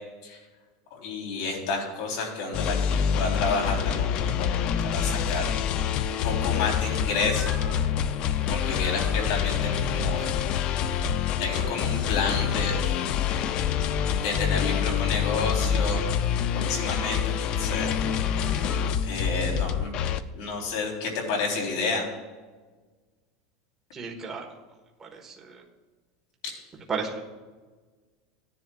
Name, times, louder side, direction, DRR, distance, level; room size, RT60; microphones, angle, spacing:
voice 1, 0.9-5.6 6.2-7.6 8.5-10.3 11.4-12.8 14.1-16.0 16.5-17.9 18.4-18.5 19.0-19.9 20.3-22.1, left 4 dB, 65° left, 0 dB, 3.5 m, -30 dB
sound 1, 2.5-20.2, left 8 dB, 40° left, 0.4 m, -26 dB
sound 2, 7.0-7.9 8.3-9.4 11.4-12.3 13.2-13.3 13.7-14.4 15.1-16.0 16.6-17.4 18.0-18.9, equal, 15° left, 2.1 m, -46 dB
sound 3, 8.5-9.1 9.8-10.4 10.8-11.7 12.5-13.1, right 7 dB, 60° right, 2.0 m, -37 dB
voice 2, 23.9-24.5 25.0-25.6 26.9-27.2, right 5 dB, 15° right, 0 dB, 1.3 m, -34 dB
16.0 x 10.5 x 2.4 m, 1.4 s
supercardioid pair, 160°, 2 cm